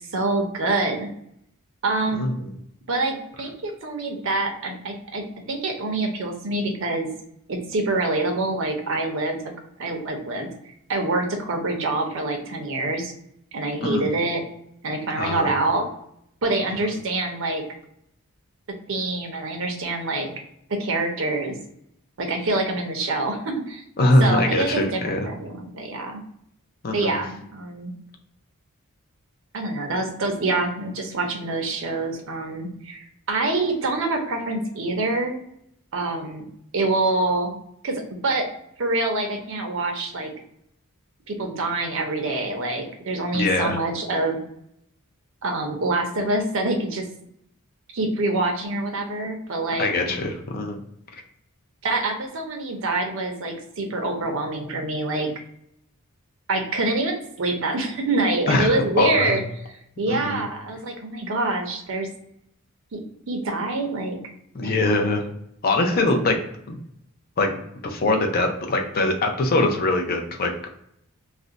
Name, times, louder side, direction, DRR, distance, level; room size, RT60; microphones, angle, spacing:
voice 1, 0.1-1.1 1.8-2.3 2.9-7.1 7.5-9.4 9.8-10.5 10.9-13.1 13.5-14.4 14.8-15.8 16.4-17.6 18.9-20.3 20.7-21.6 22.2-23.8 24.2-26.2 26.9-27.9 29.5-35.4 35.9-36.5 36.7-37.5 37.8-38.5 38.8-40.3 41.3-44.4 45.4-47.1 47.9-50.2 51.8-55.3 56.5-59.4 60.0-62.1 62.9-63.0 63.3-64.2 64.6-65.1 65.9-66.1, right 2 dB, 60° right, 3 dB, 0.6 m, -26 dB
voice 2, 15.2-15.5 24.0-25.3 26.8-27.2 43.3-43.8 49.8-50.8 58.5-59.4 60.1-60.4 64.5-65.3 65.6-66.4 66.7-66.8 67.4-67.6 67.8-70.7, left 2 dB, 40° left, 3 dB, 0.5 m, -22 dB
2.5 x 2.1 x 3.8 m, 0.73 s
head